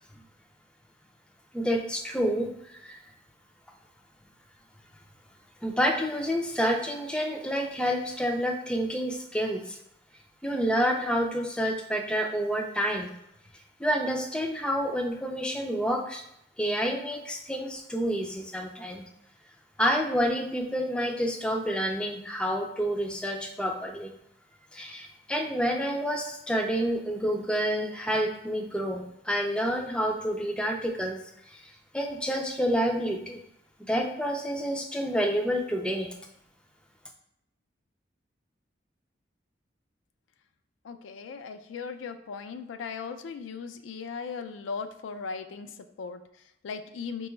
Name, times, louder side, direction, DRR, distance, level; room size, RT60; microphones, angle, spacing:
voice 1, 1.5-3.0 5.6-9.8 10.4-13.1 13.8-16.2 16.6-19.0 19.8-24.1 24.7-31.2 31.5-31.6 31.9-33.4 33.8-36.1, equal, 5° left, 2 dB, 0.3 m, -28 dB
voice 2, 40.8-47.3, left 5 dB, 85° left, 9 dB, 0.3 m, -38 dB
4.9 x 2.3 x 3.0 m, 0.77 s
head